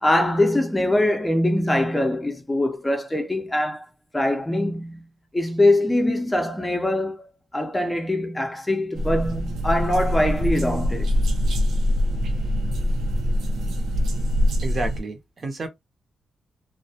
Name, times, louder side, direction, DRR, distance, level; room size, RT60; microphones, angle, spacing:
voice 1, 0.0-3.8 4.1-5.1 5.3-11.1, left 1 dB, 15° left, 0.5 m, -23 dB
sound 1, 8.9-15.0, equal, 85° right, 0.5 m, -23 dB
voice 2, 14.6-15.7, right 3 dB, 45° right, 0.6 m, -30 dB
2.2 x 2.0 x 2.7 m
cardioid pair, 100°, 0 cm